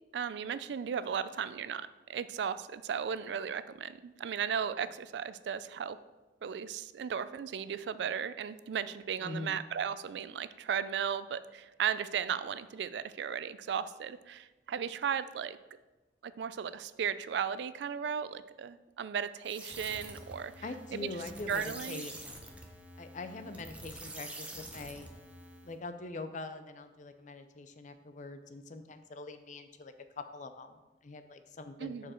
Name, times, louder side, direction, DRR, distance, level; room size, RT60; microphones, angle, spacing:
voice 1, 0.1-6.0 6.4-15.6 16.2-20.5 20.9-21.2 21.5-22.0 31.8-32.1, right 7 dB, 65° right, 15 dB, 0.3 m, -36 dB
voice 2, 9.2-9.6 20.6-22.1 23.0-25.1 25.6-29.9 30.3-32.1, left 2 dB, 45° left, 9 dB, 0.5 m, -43 dB
sound 1, 19.4-25.8, right 1 dB, 5° right, 0.7 m, -47 dB
6.6 x 5.0 x 4.3 m, 1.1 s
head